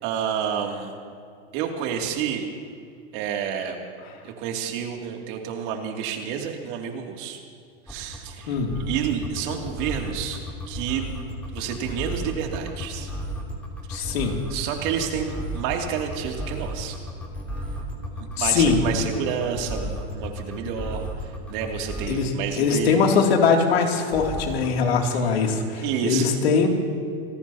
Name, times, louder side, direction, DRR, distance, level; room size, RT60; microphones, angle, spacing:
voice 1, 0.0-0.9 1.5-2.5 3.1-3.8 4.2-7.4 7.9-11.1 11.5-13.1 13.9-14.1 14.5-17.0 18.2-23.2 24.8-25.3 25.7-26.4, right 8 dB, 55° right, 2 dB, 2.8 m, -30 dB
sound 1, 7.9-22.3 24.1-24.7, equal, 5° left, 3.1 m, -33 dB
voice 2, 13.9-14.3 18.4-18.8 22.1-22.3 22.6-26.7, left 5 dB, 80° left, 1 dB, 2.9 m, -21 dB
27.0 x 17.5 x 2.9 m, 2.4 s
hypercardioid pair, 115°, 31 cm